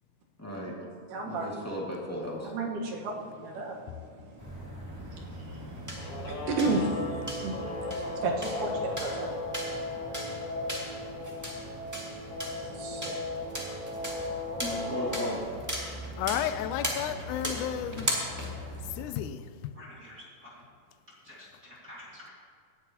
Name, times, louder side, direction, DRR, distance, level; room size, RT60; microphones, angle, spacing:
voice 1, 0.4-0.7 1.2-2.5 14.6-15.4, equal, 5° left, -5 dB, 1.4 m, -36 dB
voice 2, 1.1-1.5 2.5-7.5 8.2-9.3 12.7-13.2, right 3 dB, 85° right, 0 dB, 3.0 m, -33 dB
sound 1, 4.4-19.2, equal, 10° right, 1.0 m, -38 dB
Guitar, 6.0-15.4, left 2 dB, 45° left, 1.8 m, -36 dB
voice 3, 16.2-18.1 18.9-19.7, left 11 dB, 80° left, 10 dB, 2.0 m, -33 dB
voice 4, 19.7-20.6 21.2-22.3, left 1 dB, 35° right, -7 dB, 2.1 m, -49 dB
17.5 x 11.0 x 2.9 m, 2.3 s
omnidirectional pair, 3.7 m